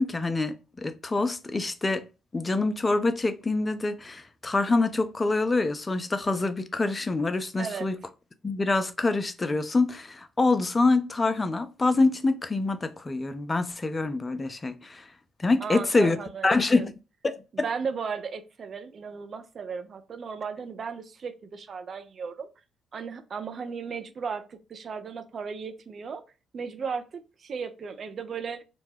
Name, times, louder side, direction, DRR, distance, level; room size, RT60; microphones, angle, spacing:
voice 1, 0.0-2.0 2.3-8.0 8.4-15.1 15.4-16.2 16.4-16.9 17.6-17.7, left 3 dB, 25° left, 0.4 m, -25 dB
voice 2, 7.6-7.9 15.6-16.9 17.5-22.5 22.9-26.2 26.5-28.6, right 6 dB, 45° right, 0.4 m, -35 dB
2.8 x 2.2 x 3.1 m
figure-of-eight pair, 45°, 0 cm